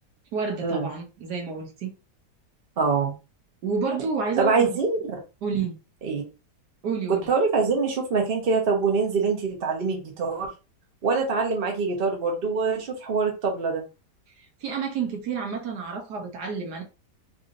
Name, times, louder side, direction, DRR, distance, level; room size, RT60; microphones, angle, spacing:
voice 1, 0.3-1.9 3.6-4.7 5.4-5.8 6.8-7.3 14.6-16.8, right 5 dB, 70° right, 1.3 m, -29 dB
voice 2, 2.8-3.1 4.4-5.0 6.0-6.2 7.1-10.5 11.0-13.8, right 4 dB, 40° right, 0.9 m, -24 dB
3.8 x 2.8 x 2.5 m
omnidirectional pair, 1.9 m